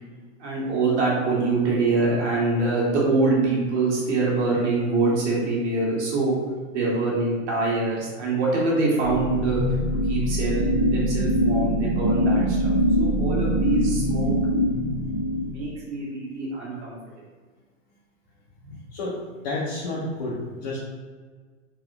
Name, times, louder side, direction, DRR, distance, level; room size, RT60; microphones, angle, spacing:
voice 1, 0.4-6.3 6.7-9.6 10.1-12.7 13.0-14.4 15.5-17.0 18.6-18.7, right 3 dB, 60° right, -4 dB, 1.5 m, -24 dB
sound 1, 9.0-15.7, equal, 15° right, 0.6 m, -23 dB
voice 2, 19.4-20.8, left 2 dB, 30° left, -5 dB, 0.5 m, -30 dB
4.0 x 2.8 x 2.8 m, 1.5 s
hypercardioid pair, 160°, 40 cm